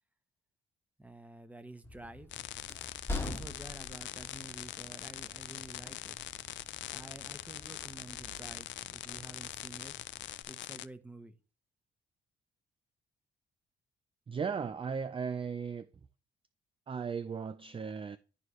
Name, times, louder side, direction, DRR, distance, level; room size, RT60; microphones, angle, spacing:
voice 1, 1.0-2.4 3.2-6.2 6.9-10.0 10.5-11.3, right 2 dB, 5° right, 1.0 m, -50 dB
Train, 1.8-10.4, left 2 dB, 10° left, 1.4 m, -45 dB
sound 1, 2.3-10.9, left 14 dB, 70° left, 0.4 m, -43 dB
voice 2, 14.3-15.9 16.9-18.2, right 6 dB, 25° right, 0.5 m, -36 dB
12.0 x 4.8 x 3.1 m
cardioid pair, 90°, 20 cm